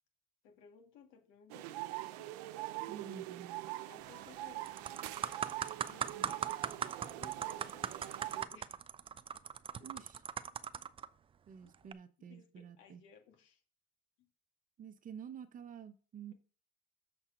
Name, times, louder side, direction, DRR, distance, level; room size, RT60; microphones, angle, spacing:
voice 1, 0.4-2.3 3.9-5.1 5.8-6.3 7.0-8.8 9.8-10.1 11.6-11.7 12.2-13.6 14.2-14.3, left 7 dB, 75° left, 4 dB, 2.0 m, -60 dB
sound 1, 1.5-8.4, right 17 dB, 90° right, 0.6 m, -43 dB
voice 2, 2.9-3.8 6.1-6.3 9.8-10.2 11.5-13.0 14.8-16.3, right 7 dB, 40° right, 10 dB, 0.9 m, -50 dB
sound 2, 4.0-4.3 4.7-11.1 11.7-11.9, right 7 dB, 25° right, 0.4 m, -40 dB
6.9 x 4.4 x 6.4 m, 0.39 s
supercardioid pair, 95°, 20 cm